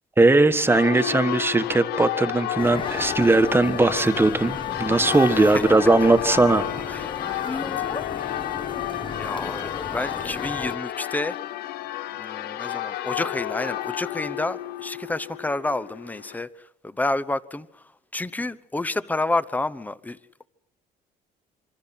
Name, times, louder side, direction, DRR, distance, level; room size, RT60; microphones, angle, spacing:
voice 1, 0.2-6.7, right 2 dB, 15° right, 1.4 m, -19 dB
Church bell, 0.7-16.4, left 13 dB, 70° left, 1.0 m, -31 dB
sound 1, 2.6-10.8, left 4 dB, 30° left, 1.2 m, -35 dB
voice 2, 7.5-8.0 8.6-8.9 9.2-11.4 12.2-16.5 16.8-17.7 18.1-20.2, left 2 dB, 10° left, 0.9 m, -29 dB
26.0 x 25.0 x 5.9 m
cardioid pair, 110°, 17 cm